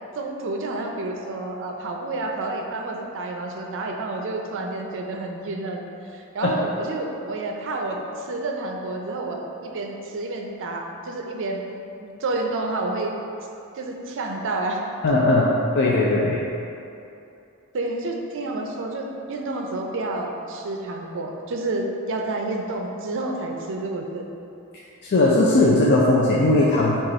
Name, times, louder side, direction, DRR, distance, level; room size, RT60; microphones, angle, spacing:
voice 1, 0.1-5.8 6.1-11.7 12.0-13.2 13.7-14.8 17.7-24.3, right 2 dB, 60° right, 2 dB, 0.5 m, -29 dB
voice 2, 15.0-16.4 24.7-27.0, left 2 dB, 50° left, -5 dB, 0.4 m, -19 dB
5.2 x 2.4 x 4.1 m, 2.8 s
head